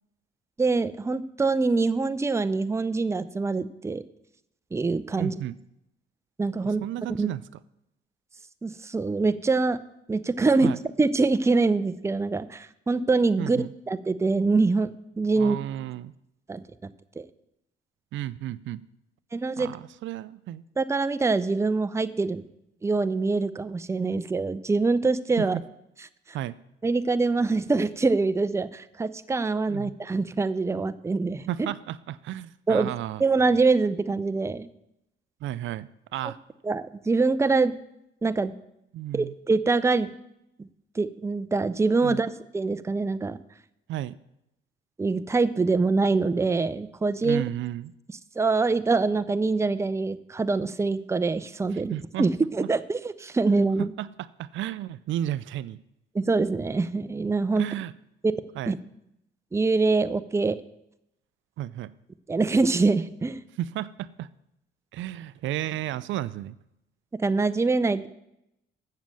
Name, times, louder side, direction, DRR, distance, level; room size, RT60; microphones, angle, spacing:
voice 1, 0.6-4.0 4.7-5.3 6.4-6.8 7.2-7.3 8.6-9.8 10.1-10.7 11.0-15.6 16.5-16.6 17.2-17.3 19.3-19.7 20.8-22.4 22.8-25.6 26.8-31.5 32.7-32.9 33.2-34.7 36.2-36.3 36.6-37.7 38.2-38.5 39.1-40.1 41.0-43.4 45.0-47.4 48.4-53.9 56.1-57.7 58.2-58.3 58.7-58.8 59.5-60.6 62.3-63.4 67.2-68.1, right 3 dB, 15° right, 12 dB, 0.5 m, -24 dB
voice 2, 5.2-5.5 6.6-7.4 10.6-10.8 13.4-13.7 15.4-16.1 18.1-18.8 19.6-20.6 25.4-25.6 26.3-26.6 29.7-29.9 31.5-33.2 35.4-36.4 38.9-39.3 42.0-42.2 43.9-44.1 47.2-47.9 51.7-52.3 53.8-54.1 54.4-55.8 57.6-57.9 58.6-58.7 61.6-61.9 63.6-64.3 64.9-66.6, right 13 dB, 75° right, 17 dB, 0.4 m, -33 dB
7.5 x 7.2 x 7.5 m, 0.83 s
cardioid pair, 90°, 20 cm